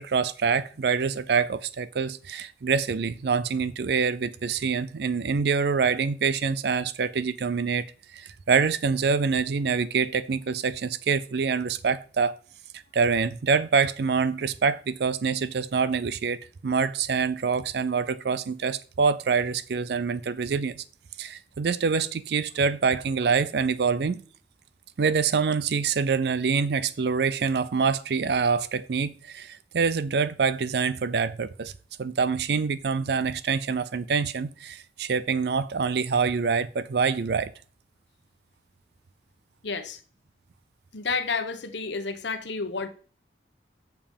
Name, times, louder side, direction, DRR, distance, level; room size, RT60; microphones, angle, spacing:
voice 1, 0.0-7.8 8.1-12.3 12.9-20.8 21.2-24.2 25.0-31.7 32.0-37.5, right 5 dB, 60° right, 0.4 m, -25 dB
voice 2, 39.6-40.0 40.9-42.9, left 4 dB, 80° left, 1.1 m, -30 dB
7.2 x 6.9 x 5.3 m
head